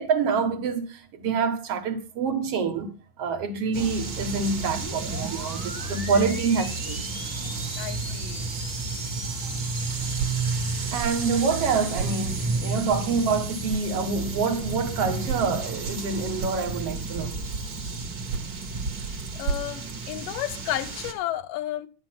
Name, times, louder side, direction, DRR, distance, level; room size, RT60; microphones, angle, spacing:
voice 1, 0.0-7.1 9.3-9.6 10.9-17.4, right 5 dB, 55° right, 2.0 m, -27 dB
sound 1, 3.7-21.1, right 3 dB, 40° right, 2.2 m, -32 dB
sound 2, 4.6-17.9, left 1 dB, 20° left, 0.6 m, -44 dB
voice 2, 7.8-8.5 19.3-21.9, left 13 dB, 80° left, 2.3 m, -32 dB
sound 3, 10.1-13.4 13.7-17.2 18.0-20.7, right 6 dB, 85° right, 2.6 m, -37 dB
11.5 x 9.8 x 6.0 m
omnidirectional pair, 4.0 m